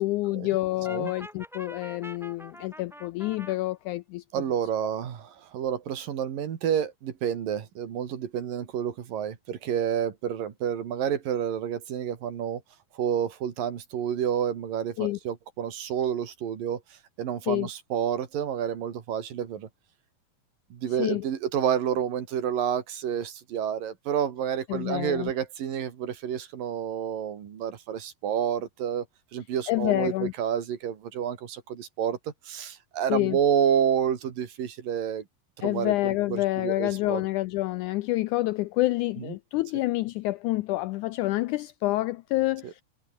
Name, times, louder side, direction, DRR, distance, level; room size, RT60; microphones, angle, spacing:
voice 1, 0.0-4.4 15.0-15.2 17.5-17.7 21.0-21.3 24.7-25.3 29.7-30.3 33.1-33.4 35.6-42.8, left 18 dB, 80° left, 1.8 m, -28 dB
Brass instrument, 0.8-3.6, equal, ahead, 5.5 m, -44 dB
voice 2, 4.3-12.6 13.0-16.8 17.2-19.7 20.7-29.1 29.3-32.2 32.5-35.2 35.6-37.2 39.2-39.3 42.6-42.7, right 9 dB, 75° right, 4.0 m, -29 dB
omnidirectional pair, 4.0 m